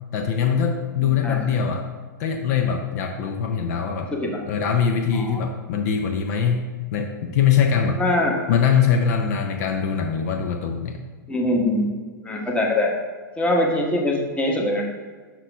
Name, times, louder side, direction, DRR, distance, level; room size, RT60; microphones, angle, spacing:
voice 1, 0.1-1.9 2.2-4.1 4.5-6.7 6.9-8.0 8.5-11.0, left 7 dB, 55° left, 4 dB, 0.6 m, -22 dB
voice 2, 1.0-1.4 4.1-4.4 5.1-5.4 8.0-8.4 11.3-11.9 12.2-12.9 13.4-14.8, left 1 dB, 10° left, 0 dB, 1.2 m, -23 dB
6.0 x 5.7 x 3.5 m, 1.4 s
hypercardioid pair, 110°, 11 cm